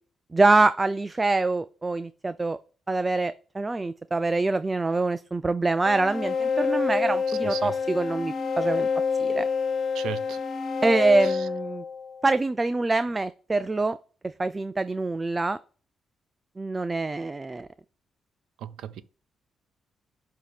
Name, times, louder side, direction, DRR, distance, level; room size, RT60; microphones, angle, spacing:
voice 1, 0.3-2.6 2.9-8.9 9.2-9.5 10.8-11.8 12.2-14.0 14.4-15.6 16.6-17.7, right 3 dB, 20° right, 0.3 m, -25 dB
sound 1, 5.8-12.3, left 5 dB, 60° left, 0.8 m, -27 dB
voice 2, 7.3-7.7 9.9-10.4 11.2-11.5 18.6-19.0, right 10 dB, 90° right, 0.4 m, -36 dB
7.5 x 2.8 x 5.0 m
cardioid pair, 100°, 0 cm